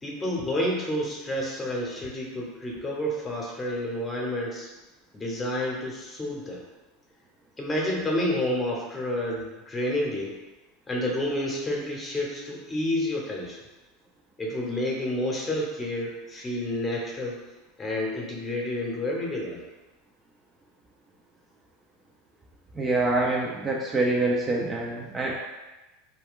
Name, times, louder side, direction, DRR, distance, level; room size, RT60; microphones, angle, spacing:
voice 1, 0.0-4.7 5.1-6.6 7.6-10.4 10.9-13.6 14.4-17.4 17.8-19.6, left 1 dB, 20° left, -2 dB, 0.8 m, -29 dB
voice 2, 22.8-25.3, right 2 dB, 20° right, -2 dB, 0.4 m, -25 dB
2.3 x 2.2 x 3.6 m, 1.1 s
hypercardioid pair, 85°, 0 cm